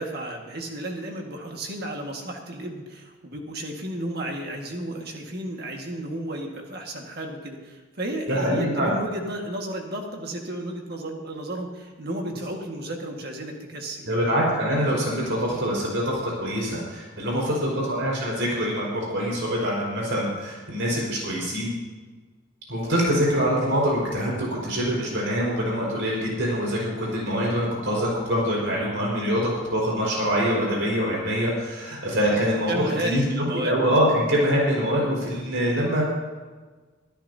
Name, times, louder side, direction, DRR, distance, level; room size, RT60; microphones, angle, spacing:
voice 1, 0.0-14.2 17.3-17.8 22.8-23.1 32.7-33.8, right 1 dB, 50° right, 1 dB, 1.7 m, -33 dB
voice 2, 8.3-8.9 14.1-21.7 22.7-33.3 33.5-36.0, equal, 70° right, -4 dB, 4.9 m, -24 dB
24.0 x 13.5 x 2.8 m, 1.4 s
head